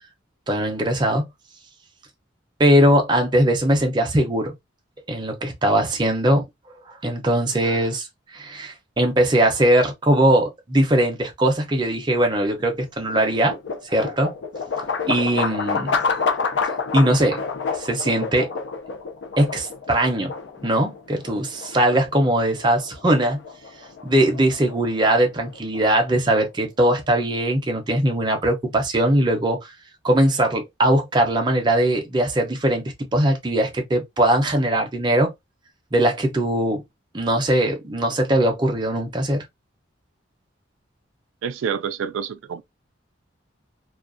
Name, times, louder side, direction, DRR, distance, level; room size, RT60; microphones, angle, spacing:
voice 1, 0.5-1.3 2.6-4.5 5.1-6.5 6.9-8.1 8.3-13.5 13.8-14.3 15.1-16.0 16.9-17.4 17.7-18.5 19.4-20.3 20.6-23.4 24.0-29.7 30.0-32.8 33.1-35.3 35.9-36.8 37.1-39.5, right 1 dB, 20° right, 0.5 m, -20 dB
Sheet Metal, 12.4-26.5, left 5 dB, 65° left, 0.4 m, -29 dB
voice 2, 41.4-42.6, right 7 dB, 80° right, 0.3 m, -28 dB
2.3 x 2.1 x 2.4 m
head